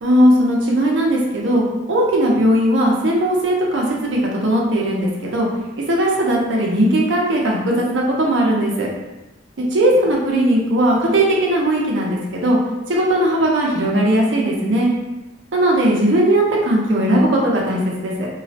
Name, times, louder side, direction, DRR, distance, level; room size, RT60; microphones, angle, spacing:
voice 1, 0.0-5.5 5.8-8.9 9.6-12.6 12.9-14.9 15.5-18.3, right 1 dB, 85° right, -2 dB, 0.6 m, -18 dB
2.3 x 2.0 x 2.7 m, 1.0 s
head